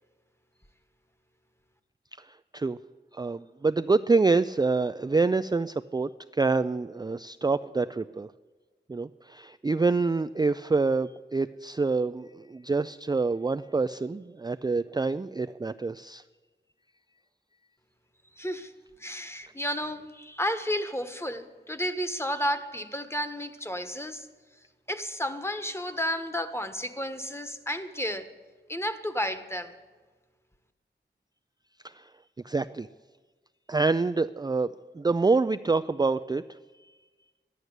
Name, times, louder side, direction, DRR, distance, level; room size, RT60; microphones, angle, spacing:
voice 1, 2.2-2.8 3.1-8.3 8.9-16.2 31.8-32.1 32.4-32.9 33.7-36.4, right 3 dB, 20° right, 11 dB, 0.4 m, -26 dB
voice 2, 18.4-18.7 19.0-24.3 24.9-28.3 28.7-29.7, equal, 15° left, 9 dB, 1.3 m, -32 dB
13.5 x 11.0 x 8.1 m, 1.4 s
wide cardioid pair, 45°, 20 cm